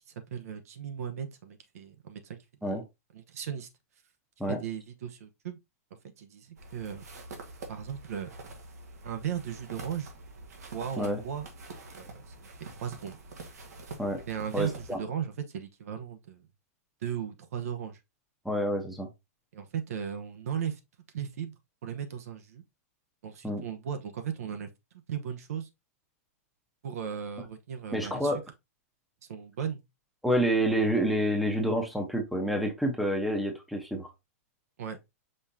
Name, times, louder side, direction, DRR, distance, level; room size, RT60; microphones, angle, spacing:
voice 1, 0.1-2.8 3.1-3.7 4.5-5.6 6.2-7.0 7.7-8.3 9.0-10.1 10.7-11.5 11.9-12.5 12.8-13.2 14.3-16.5 17.0-18.0 19.5-20.8 21.1-22.6 23.2-24.7 25.1-25.7 26.8-28.3 29.3-29.8 34.8-35.0, right 8 dB, 70° right, 0.9 m, -36 dB
sound 1, 6.6-15.0, right 2 dB, 90° right, 1.5 m, -46 dB
voice 2, 14.5-15.0 18.4-19.1 23.4-23.6 27.9-28.4 30.2-34.1, equal, ahead, 0.9 m, -28 dB
5.4 x 3.6 x 2.7 m
hypercardioid pair, 150°, 8 cm